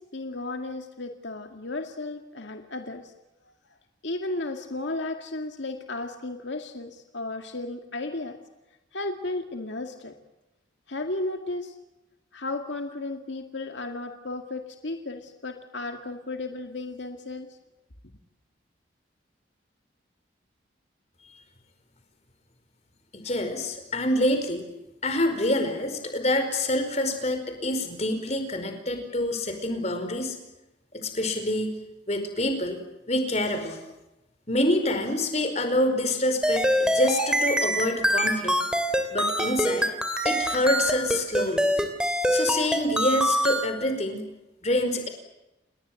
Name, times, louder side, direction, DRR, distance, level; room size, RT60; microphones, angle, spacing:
voice 1, 0.0-3.1 4.0-8.4 8.9-10.1 10.9-11.8 12.3-17.5, left 2 dB, 75° left, 4 dB, 2.1 m, -34 dB
voice 2, 23.1-24.7 25.0-30.4 30.9-31.7 32.1-32.8 33.1-33.8 34.5-38.5 39.1-39.9 40.2-41.7 42.3-44.2 44.6-45.1, left 1 dB, 35° left, 7 dB, 4.8 m, -26 dB
sound 1, 36.4-43.7, equal, 5° right, 2.8 m, -24 dB
29.5 x 21.0 x 7.8 m, 0.95 s
head